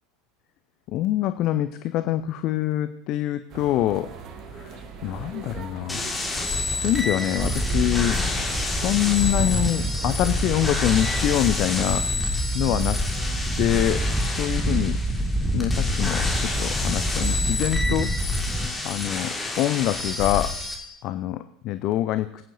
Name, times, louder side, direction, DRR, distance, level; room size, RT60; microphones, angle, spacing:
voice 1, 0.9-4.1 4.6-4.7 5.0-6.1 6.8-8.2 8.7-12.1 12.5-12.9 13.6-14.9 15.5-18.1 18.8-20.5 21.0-22.3, left 13 dB, 45° left, 12 dB, 0.4 m, -25 dB
Cologne station, 3.5-11.4, right 5 dB, 40° right, 1.2 m, -40 dB
sound 1, 5.9-20.7, left 3 dB, 10° left, 1.9 m, -29 dB
Wind, 7.4-18.7, right 1 dB, 5° right, 0.9 m, -27 dB
20.5 x 8.9 x 2.7 m, 0.79 s
figure-of-eight pair, 75°, 0 cm